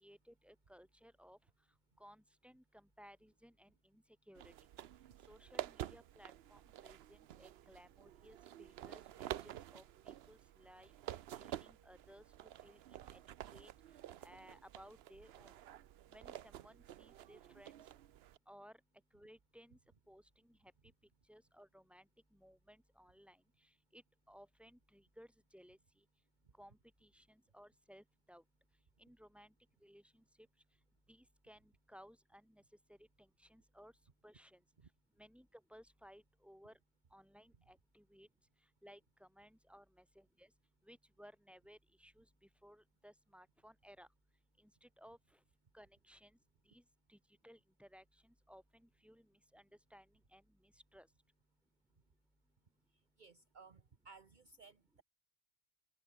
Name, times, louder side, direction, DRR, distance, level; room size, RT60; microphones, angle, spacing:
voice 1, 0.0-1.4 2.0-4.5 5.3-10.9 11.3-12.2 12.6-13.2 13.5-13.7 14.2-15.5 16.1-17.8 18.5-18.8 19.1-19.8 20.1-20.7 21.3-26.0 26.6-28.4 29.0-29.5 29.8-30.2 31.1-32.6 32.9-33.9 34.2-34.6 35.2-36.8 37.1-38.3 38.8-40.5 40.8-44.1 44.6-45.4 45.7-46.4 46.7-46.8 47.1-47.2 47.4-51.1, equal, ahead, 6.1 m, -61 dB
sound 1, 4.4-18.4, right 11 dB, 75° right, 0.9 m, -50 dB
voice 2, 53.2-55.0, right 4 dB, 50° right, 1.2 m, -60 dB
omnidirectional pair, 1.0 m